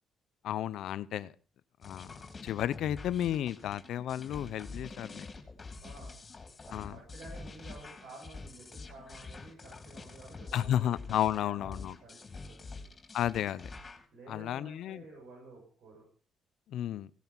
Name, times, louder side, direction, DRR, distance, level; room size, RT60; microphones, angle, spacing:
voice 1, 0.4-1.3 1.8-2.1 2.4-5.3 6.7-7.0 10.5-12.0 13.1-13.7 14.3-15.0 16.7-17.1, left 11 dB, 80° left, 17 dB, 0.6 m, -32 dB
sound 1, 1.8-14.0, left 3 dB, 35° left, 3.1 m, -46 dB
voice 2, 5.8-6.2 6.6-12.2 12.5-12.9 14.1-16.1, right 2 dB, 75° right, -2 dB, 7.9 m, -52 dB
17.0 x 10.5 x 5.6 m, 0.44 s
cardioid pair, 90°, 0 cm